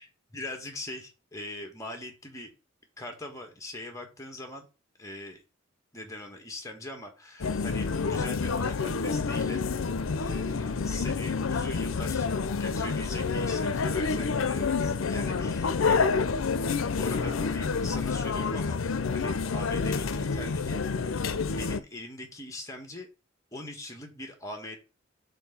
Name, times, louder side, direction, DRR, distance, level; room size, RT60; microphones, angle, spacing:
voice 1, 0.3-2.5 3.0-4.7 5.0-5.4 5.9-9.6 10.2-16.1 16.9-18.8 19.1-23.1 23.5-24.8, left 1 dB, 15° left, 3 dB, 1.5 m, -42 dB
sound 1, 7.4-21.8, left 4 dB, 80° left, 0.6 m, -28 dB
4.5 x 4.4 x 5.7 m, 0.30 s
head